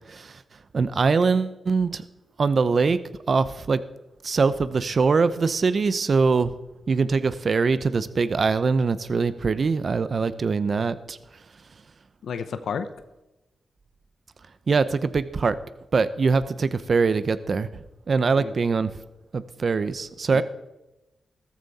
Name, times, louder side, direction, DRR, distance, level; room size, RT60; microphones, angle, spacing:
voice 1, 0.1-0.4 0.7-2.0 2.4-3.0 3.3-3.8 4.2-6.5 6.9-11.2 14.7-15.6 15.9-18.9 19.3-20.4, right 4 dB, 55° right, 14 dB, 0.8 m, -23 dB
voice 2, 12.2-12.9 18.4-18.5 20.3-20.4, left 6 dB, 80° left, 11 dB, 0.8 m, -31 dB
14.5 x 14.0 x 4.2 m, 1.0 s
cardioid pair, 70°, 0 cm